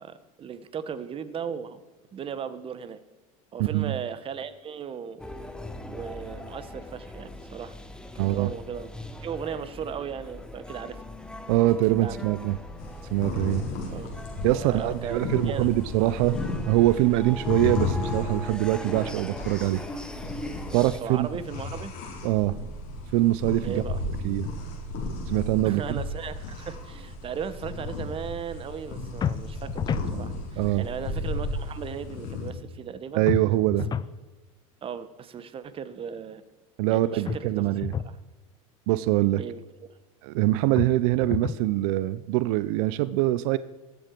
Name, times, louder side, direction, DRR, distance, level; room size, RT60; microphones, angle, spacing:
voice 1, 0.0-1.8 2.1-3.0 3.5-5.2 5.9-7.7 8.2-8.9 9.2-11.0 12.0-12.1 13.8-14.1 14.5-15.7 21.0-21.9 23.6-24.0 25.6-33.3 34.8-36.4 36.9-37.7 39.4-39.6, right 7 dB, 30° right, 13 dB, 1.1 m, -36 dB
voice 2, 3.6-3.9 8.2-8.5 11.5-12.6 13.1-13.6 14.4-19.8 20.7-21.3 22.2-22.6 23.1-23.8 24.2-24.5 25.3-26.0 30.6-30.8 33.1-33.9 36.8-37.9 38.9-39.4 40.2-43.6, right 16 dB, 65° right, 16 dB, 0.6 m, -24 dB
sound 1, 5.2-21.0, left 1 dB, 5° left, 1.2 m, -40 dB
sound 2, 12.8-32.5, left 3 dB, 55° left, 3.9 m, -34 dB
sound 3, 29.2-30.1 33.3-34.2 37.3-38.2 40.8-41.7, left 7 dB, 25° left, 0.5 m, -31 dB
21.0 x 7.8 x 4.6 m, 1.2 s
supercardioid pair, 110°, 18 cm